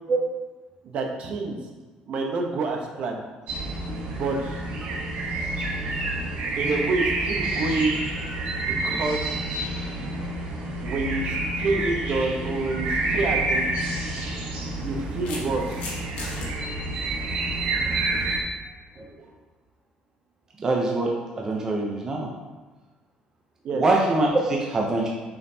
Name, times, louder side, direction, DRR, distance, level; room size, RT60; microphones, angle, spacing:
voice 1, 0.8-1.6 2.1-3.2 4.2-4.6 6.6-7.9 8.6-9.3 10.8-13.7 14.8-15.8 23.6-23.8, right 3 dB, 50° right, 2 dB, 0.8 m, -28 dB
sound 1, 3.5-18.4, right 2 dB, 75° right, 1.1 m, -28 dB
sound 2, 13.3-13.5 14.6-16.5, left 3 dB, 90° left, 1.4 m, -37 dB
voice 2, 20.6-22.3 23.7-25.1, right 2 dB, 25° right, -1 dB, 0.6 m, -24 dB
6.8 x 5.3 x 2.8 m, 1.3 s
cardioid pair, 175°, 3 cm